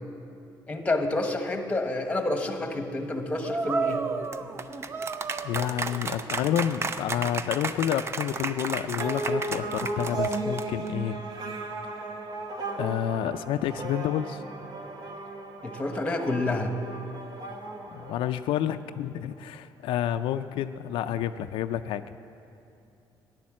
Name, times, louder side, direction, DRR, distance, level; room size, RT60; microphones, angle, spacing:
voice 1, 0.7-4.0 15.6-16.7, left 2 dB, 15° left, 6 dB, 1.2 m, -28 dB
sound 1, 3.4-10.9, right 4 dB, 30° right, 0.6 m, -32 dB
voice 2, 5.4-11.2 12.8-14.4 17.9-22.0, left 10 dB, 85° left, 9 dB, 0.4 m, -29 dB
sound 2, 9.0-18.8, right 2 dB, 50° right, 1.4 m, -35 dB
14.5 x 10.5 x 7.4 m, 2.6 s
cardioid pair, 135°, 9 cm